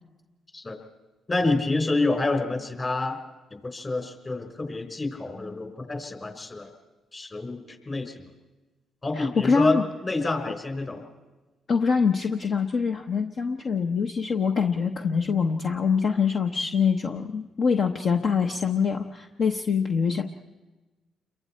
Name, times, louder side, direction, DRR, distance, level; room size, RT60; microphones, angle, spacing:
voice 1, 1.3-3.2 3.5-6.7 7.1-8.1 9.0-9.8 10.0-11.0, left 2 dB, 35° left, 5 dB, 4.3 m, -28 dB
voice 2, 9.1-9.8 11.7-20.2, left 5 dB, 60° left, 4 dB, 0.9 m, -24 dB
28.5 x 22.5 x 4.4 m, 1.2 s
supercardioid pair, 60°, 0 cm